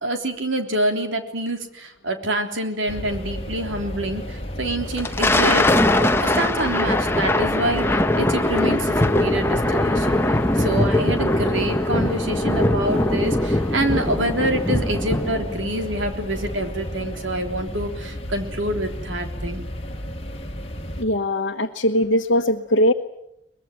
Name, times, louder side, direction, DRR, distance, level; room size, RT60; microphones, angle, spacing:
voice 1, 0.0-19.7, right 1 dB, 75° right, 5 dB, 3.5 m, -26 dB
sound 1, 2.9-21.0, equal, 30° left, 2.2 m, -33 dB
Thunder, 4.8-15.6, left 1 dB, 10° left, 1.0 m, -21 dB
voice 2, 21.0-22.9, left 1 dB, 60° left, 1 dB, 1.2 m, -20 dB
23.5 x 21.0 x 9.1 m, 0.81 s
head